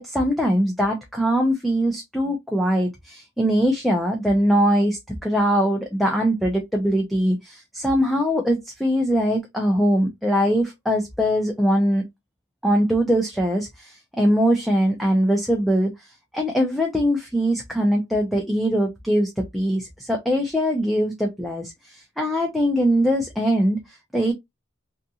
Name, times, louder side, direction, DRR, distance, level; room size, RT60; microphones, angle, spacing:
voice 1, 0.0-12.0 12.6-24.3, equal, ahead, 0.4 m, -22 dB
2.7 x 2.5 x 2.3 m
head